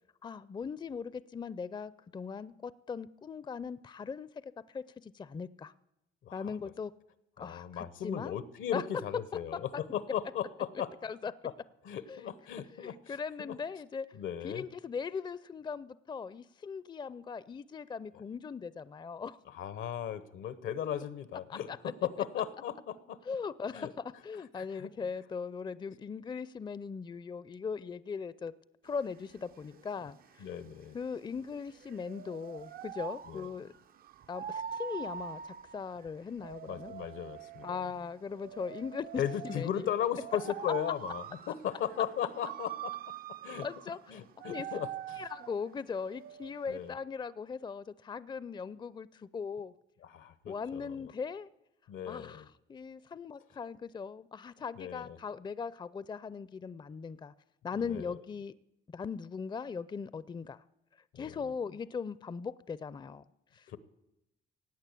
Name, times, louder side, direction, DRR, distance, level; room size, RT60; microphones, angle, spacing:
voice 1, 0.2-4.3 4.7-5.7 6.3-6.9 7.4-8.3 8.7-8.8 9.5-9.6 11.0-11.3 12.1-12.3 12.7-14.2 14.4-19.4 21.5-21.8 23.3-23.9 24.2-28.5 28.8-30.2 30.9-33.7 34.3-36.9 37.6-39.7 43.6-44.1 44.4-44.7 45.2-49.7 50.5-51.5 52.1-52.4 52.7-57.3 57.6-58.5 58.9-60.6 61.1-63.2 63.5-63.8, left 5 dB, 25° left, 0.4 m, -39 dB
voice 2, 6.2-6.5 7.4-10.9 11.4-11.5 11.8-13.6 14.1-14.6 19.5-23.2 23.7-23.9 24.6-24.9 30.4-31.0 33.3-33.5 36.7-37.8 39.2-42.9 43.4-43.7 44.1-44.9 46.7-46.9 50.0-51.0 51.9-52.5 54.8-55.2 57.8-58.2 61.1-61.4 63.7-63.8, left 9 dB, 80° left, 1.0 m, -37 dB
sound 1, 28.9-46.9, right 9 dB, 50° right, 0.4 m, -45 dB
17.0 x 8.8 x 8.3 m
cardioid pair, 90°, 20 cm